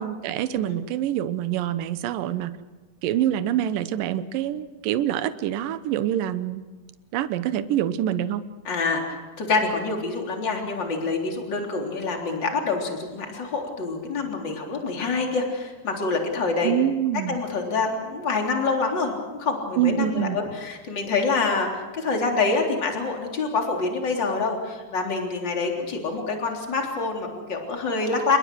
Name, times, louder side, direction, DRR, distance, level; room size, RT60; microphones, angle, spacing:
voice 1, 0.0-2.6 3.0-6.7 7.1-8.4 16.6-17.4 19.8-20.4, right 11 dB, 70° right, 12 dB, 2.3 m, -25 dB
voice 2, 8.6-16.7 17.3-28.4, left 4 dB, 30° left, 1 dB, 3.8 m, -26 dB
28.5 x 21.5 x 6.3 m, 1.2 s
omnidirectional pair, 4.7 m